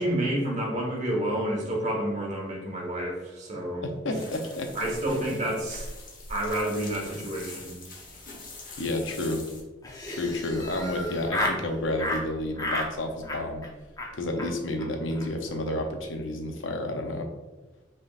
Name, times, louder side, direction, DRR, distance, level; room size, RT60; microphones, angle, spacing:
voice 1, 0.0-3.9 4.7-5.9 6.3-7.8, right 1 dB, 40° right, -2 dB, 1.3 m, -29 dB
voice 2, 3.8-4.7 8.8-9.4 10.1-13.6 14.1-17.3, left 1 dB, 90° left, 4 dB, 0.7 m, -30 dB
sound 1, 4.1-9.6, left 2 dB, 45° left, 1.1 m, -43 dB
Laughter, 9.8-11.6 12.0-12.2 12.6-12.9 13.2-13.7 14.0-14.1 14.4-14.5 14.8-14.9 15.1-15.3 15.5-15.9, left 1 dB, 20° left, 0.7 m, -32 dB
5.2 x 3.7 x 2.5 m, 1.1 s
head